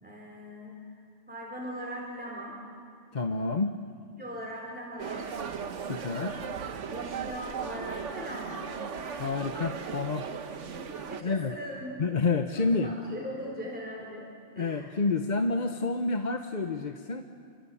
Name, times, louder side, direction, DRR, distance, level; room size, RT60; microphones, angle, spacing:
voice 1, 0.0-0.9 1.3-2.6 4.2-5.3 6.9-8.7 11.1-11.9 12.6-14.3 14.5-15.0, equal, 5° right, -3 dB, 4.4 m, -40 dB
voice 2, 3.1-3.8 5.9-6.4 9.2-10.3 11.2-11.5 12.0-12.9 14.6-17.2, left 3 dB, 40° left, 6 dB, 1.0 m, -29 dB
sound 1, 5.0-11.2, right 6 dB, 70° right, 1.4 m, -37 dB
27.0 x 25.5 x 8.6 m, 2.2 s
omnidirectional pair, 1.3 m